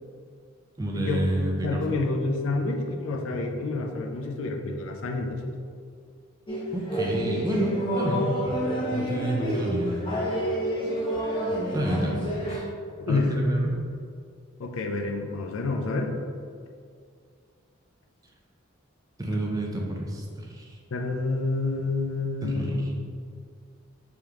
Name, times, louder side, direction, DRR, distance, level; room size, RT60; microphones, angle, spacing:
voice 1, 0.8-2.0 6.7-8.4 8.9-10.0 11.7-12.2 12.5-12.7 13.1-13.7 19.2-20.7 22.4-22.9, right 1 dB, 15° right, -1 dB, 0.4 m, -29 dB
voice 2, 1.6-5.4 13.0-13.3 14.6-16.2 20.9-22.8, left 3 dB, 75° left, 3 dB, 0.4 m, -28 dB
sound 1, 6.5-12.6, equal, 25° left, 0.7 m, -28 dB
3.4 x 3.0 x 3.6 m, 2.2 s
head